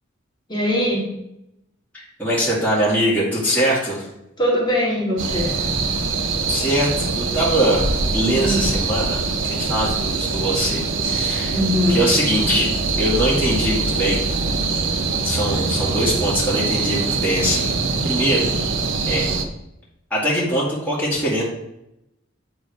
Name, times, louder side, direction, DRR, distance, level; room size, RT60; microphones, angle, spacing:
voice 1, 0.5-1.1 4.4-5.7 8.4-8.6 11.5-12.0, left 1 dB, 25° left, -5 dB, 2.1 m, -21 dB
voice 2, 1.9-4.1 6.5-7.9 8.1-11.5 11.9-12.7 13.0-14.2 15.2-18.5 19.1-19.3 20.1-21.4, equal, 10° left, -8 dB, 2.1 m, -22 dB
sound 1, 5.2-19.4, right 4 dB, 70° right, 0.8 m, -23 dB
8.7 x 4.0 x 4.8 m, 0.84 s
head